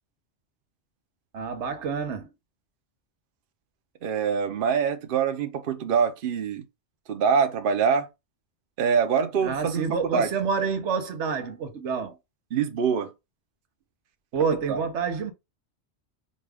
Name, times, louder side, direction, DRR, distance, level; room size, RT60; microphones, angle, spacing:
voice 1, 1.3-2.3 9.4-12.2 14.3-15.3, right 5 dB, 90° right, 1.1 m, -28 dB
voice 2, 4.0-6.6 7.1-8.1 8.8-10.3 12.5-13.1 14.7-14.8, right 6 dB, 55° right, 0.8 m, -24 dB
5.3 x 2.3 x 3.4 m
omnidirectional pair, 1.1 m